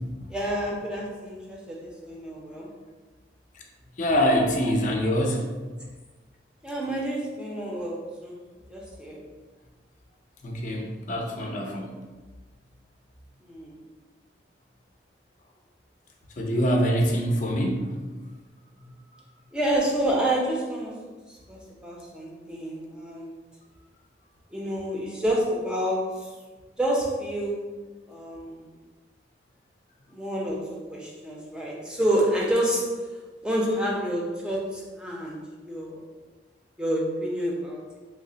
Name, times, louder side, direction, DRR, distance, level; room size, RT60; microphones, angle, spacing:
voice 1, 0.3-2.7 6.6-8.4 8.7-9.2 13.4-13.8 19.5-20.9 21.3-23.3 24.5-26.3 26.8-27.8 28.1-28.7 30.1-33.0 33.4-36.0 36.8-37.8, right 1 dB, 5° right, -4 dB, 0.5 m, -28 dB
voice 2, 4.0-5.4 10.4-11.9 16.4-17.9, equal, 45° left, 0 dB, 0.5 m, -24 dB
3.2 x 2.0 x 3.8 m, 1.3 s
head